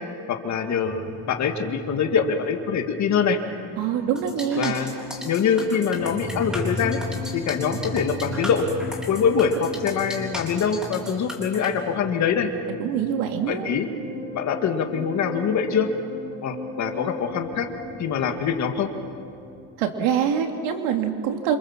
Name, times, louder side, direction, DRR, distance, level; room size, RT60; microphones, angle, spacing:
voice 1, 0.3-3.4 4.6-4.9 5.2-7.0 7.3-8.7 9.1-12.5 13.5-13.9 14.3-15.9 16.4-17.7 18.0-18.9, left 6 dB, 35° left, 5 dB, 2.1 m, -24 dB
sound 1, 0.9-19.7, left 2 dB, 30° right, 7.7 m, -37 dB
voice 2, 3.8-4.7 12.8-13.7 19.8-21.6, right 8 dB, 85° right, 4 dB, 3.0 m, -24 dB
sound 2, 4.2-11.7, left 1 dB, ahead, 3.9 m, -36 dB
27.0 x 26.5 x 7.5 m, 2.7 s
cardioid pair, 160°, 45 cm